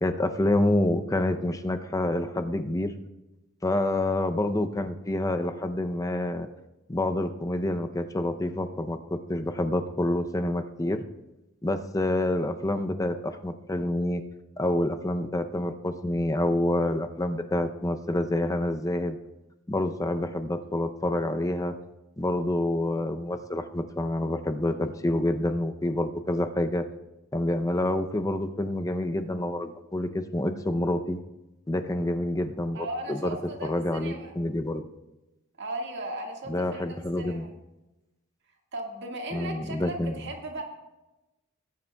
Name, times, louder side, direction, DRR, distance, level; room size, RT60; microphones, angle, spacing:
voice 1, 0.0-2.9 3.6-6.5 6.9-11.0 11.6-14.2 14.6-19.2 19.7-21.8 22.2-26.8 27.3-31.2 31.7-33.4 33.6-34.8 36.5-37.5 39.3-40.2, left 1 dB, 15° left, 8 dB, 0.5 m, -27 dB
voice 2, 32.7-34.3 35.6-37.5 38.7-40.6, right 1 dB, 55° right, 2 dB, 1.7 m, -37 dB
19.0 x 9.6 x 2.3 m, 1.0 s
head